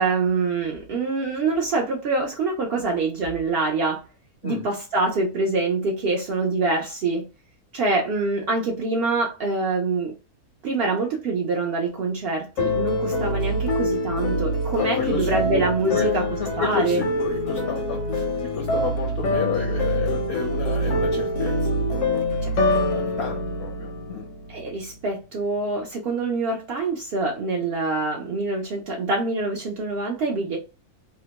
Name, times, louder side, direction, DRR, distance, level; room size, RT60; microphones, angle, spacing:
voice 1, 0.0-4.0 4.4-7.3 7.7-10.1 10.6-16.3 16.6-17.0 24.5-30.6, right 3 dB, 80° right, -1 dB, 0.5 m, -25 dB
sound 1, 12.6-24.7, left 1 dB, 85° left, 1.1 m, -25 dB
voice 2, 14.7-18.3 18.5-22.5 22.9-24.3, left 6 dB, 65° left, 2 dB, 0.7 m, -32 dB
2.8 x 2.1 x 2.8 m, 0.30 s
omnidirectional pair, 1.6 m